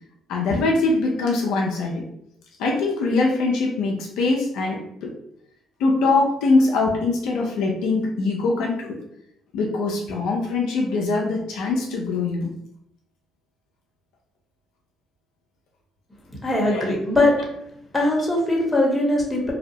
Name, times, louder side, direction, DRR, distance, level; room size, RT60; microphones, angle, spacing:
voice 1, 0.3-2.0 2.6-5.1 5.8-9.0 9.5-12.5 16.7-16.9, left 3 dB, 75° left, -1 dB, 0.4 m, -22 dB
voice 2, 16.4-17.3 17.9-19.5, left 1 dB, 10° left, -3 dB, 1.0 m, -20 dB
2.6 x 2.0 x 2.8 m, 0.74 s
hypercardioid pair, 55°, 0 cm